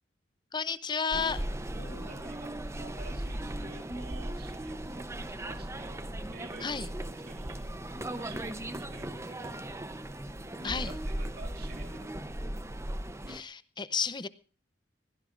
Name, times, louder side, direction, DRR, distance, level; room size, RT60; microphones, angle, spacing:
voice 1, 0.5-1.4 6.6-6.9 10.6-10.9 13.3-14.3, left 5 dB, 25° left, 15 dB, 0.6 m, -32 dB
sound 1, 1.1-13.4, right 1 dB, 15° right, 0.7 m, -37 dB
sound 2, 1.7-4.2 4.5-4.6, left 1 dB, 70° left, 1.8 m, -55 dB
voice 2, 1.9-7.6 8.1-9.6 10.6-12.4, right 3 dB, 55° right, 5 dB, 2.2 m, -51 dB
22.5 x 16.5 x 2.5 m, 0.38 s
head